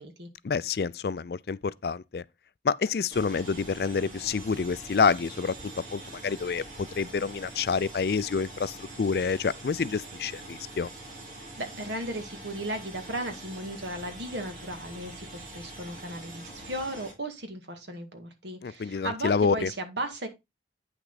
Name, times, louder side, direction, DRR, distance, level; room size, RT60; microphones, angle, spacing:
voice 1, 0.4-2.2 2.6-10.9 18.6-19.7, left 5 dB, 55° left, 0.4 m, -28 dB
sound 1, 3.1-17.1, right 1 dB, 40° right, 3.5 m, -44 dB
voice 2, 11.6-20.3, right 1 dB, 75° right, 2.0 m, -36 dB
9.1 x 6.1 x 3.9 m
head